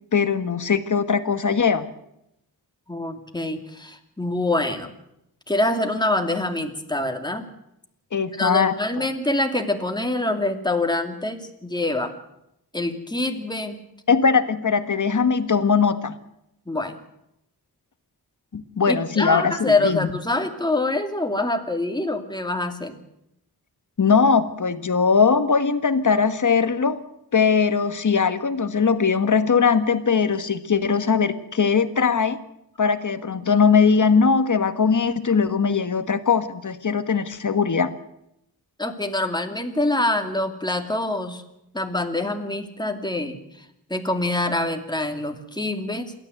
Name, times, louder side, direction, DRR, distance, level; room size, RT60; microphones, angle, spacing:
voice 1, 0.1-1.9 8.1-9.1 14.1-16.2 18.5-20.0 24.0-27.0 27.3-32.4 32.8-37.9, left 5 dB, 50° left, 11 dB, 1.6 m, -20 dB
voice 2, 2.9-4.9 5.5-7.5 8.3-12.1 12.7-13.8 16.7-17.0 18.9-23.0 38.8-41.4 41.7-43.6 43.9-46.1, left 2 dB, 10° left, 5 dB, 2.5 m, -25 dB
28.0 x 13.0 x 8.0 m, 0.81 s
wide cardioid pair, 125°, 39 cm